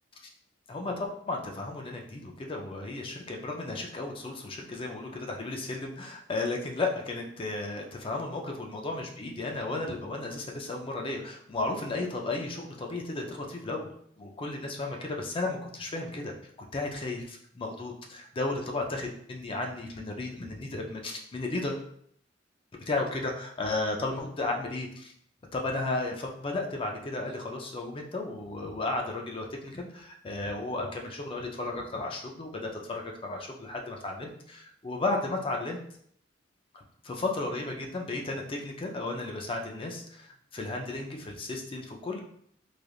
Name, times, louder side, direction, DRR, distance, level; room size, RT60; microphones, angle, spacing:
voice 1, 0.7-13.9 14.2-16.3 16.7-21.8 22.9-25.1 25.5-35.8 36.7-42.2, left 2 dB, 30° left, 2 dB, 0.4 m, -34 dB
3.3 x 2.4 x 2.3 m, 0.66 s
head